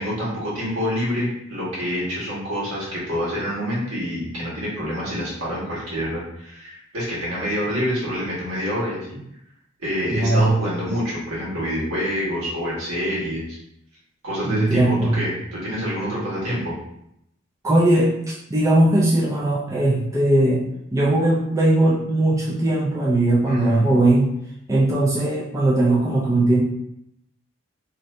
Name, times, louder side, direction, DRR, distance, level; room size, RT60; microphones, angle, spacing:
voice 1, 0.0-9.2 9.8-13.6 14.2-16.8 23.5-23.9, equal, 90° right, -6 dB, 1.4 m, -27 dB
voice 2, 10.1-10.6 14.4-15.2 17.6-20.6 20.9-24.3 24.7-26.6, right 1 dB, 15° right, -5 dB, 0.4 m, -19 dB
2.7 x 2.6 x 3.2 m, 0.77 s
head